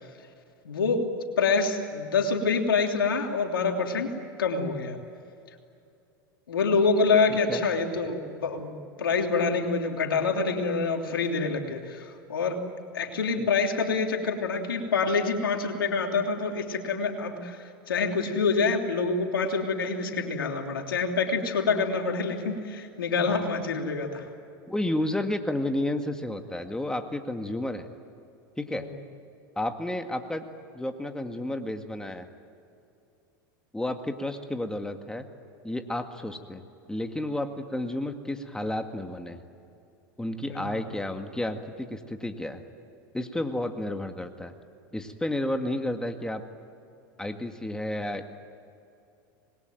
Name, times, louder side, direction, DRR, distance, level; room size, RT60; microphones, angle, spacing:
voice 1, 0.6-4.1 4.4-5.0 6.5-12.6 12.9-24.3 28.7-29.0 40.5-40.8, left 4 dB, 85° left, 3 dB, 3.2 m, -26 dB
voice 2, 24.7-27.9 28.6-28.9 29.6-30.4 30.7-32.3 33.7-35.3 35.6-39.4 40.2-42.6 43.1-44.5 44.9-46.4 47.2-48.3, left 1 dB, 5° left, 6 dB, 2.0 m, -31 dB
26.5 x 21.5 x 9.3 m, 2.6 s
hypercardioid pair, 95°, 11 cm